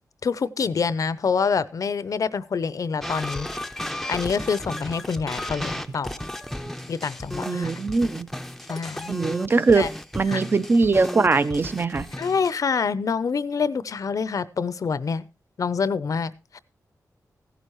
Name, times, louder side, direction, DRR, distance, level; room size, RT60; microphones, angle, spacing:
voice 1, 0.2-3.5 4.1-6.1 6.9-7.7 8.7-9.1 9.8-9.9 10.3-10.4 12.2-15.2 15.6-16.6, left 5 dB, 60° left, 0.6 m, -26 dB
sound 1, 3.0-12.5, left 1 dB, 5° left, 0.6 m, -34 dB
voice 2, 7.5-8.3 9.1-9.9 10.1-12.1, right 4 dB, 35° right, 0.6 m, -21 dB
16.0 x 11.0 x 3.1 m
wide cardioid pair, 140°, 7 cm